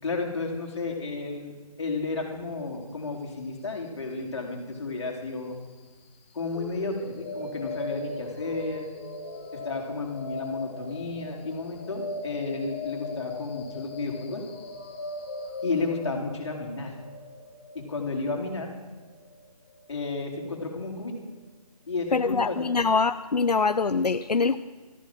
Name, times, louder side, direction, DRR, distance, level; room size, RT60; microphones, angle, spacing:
voice 1, 0.0-5.6 6.3-8.9 9.5-14.4 15.6-16.9 17.7-18.7 19.9-21.1 21.9-22.7, left 3 dB, 45° left, 1 dB, 3.9 m, -32 dB
sound 1, 6.5-20.5, left 2 dB, 20° left, 1.2 m, -39 dB
voice 2, 22.1-24.6, left 4 dB, 85° left, 11 dB, 0.7 m, -24 dB
14.0 x 11.5 x 7.6 m, 1.3 s
figure-of-eight pair, 160°, 20 cm